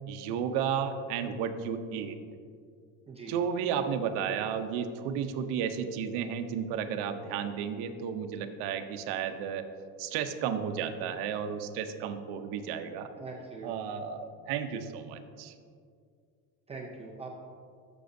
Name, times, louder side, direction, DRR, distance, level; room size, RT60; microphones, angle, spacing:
voice 1, 0.1-2.2 3.3-9.6 10.0-13.1 13.6-15.5, right 7 dB, 60° right, 7 dB, 0.7 m, -33 dB
voice 2, 3.1-3.4 13.2-14.0 16.7-17.5, right 3 dB, 15° right, -2 dB, 0.4 m, -43 dB
12.0 x 6.9 x 2.6 m, 2.2 s
cardioid pair, 160°, 45 cm